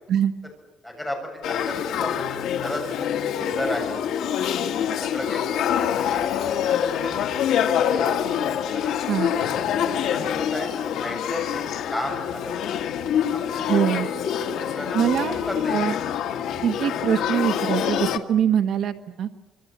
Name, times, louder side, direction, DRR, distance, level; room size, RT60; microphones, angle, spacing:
voice 1, 0.8-3.1 3.3-4.0 5.0-8.1 8.7-8.9 9.9-12.7 13.3-14.1 14.4-15.9, left 1 dB, 5° left, 0 dB, 7.6 m, -34 dB
Male speech man speaking / Child speech kid speaking / Conversation, 1.4-18.2, left 9 dB, 75° left, 1.9 m, -25 dB
voice 2, 13.7-14.1 14.9-15.4 15.7-15.9 16.6-19.3, right 9 dB, 55° right, 7 dB, 1.3 m, -23 dB
26.5 x 24.5 x 8.7 m, 1.1 s
cardioid pair, 170°, 0 cm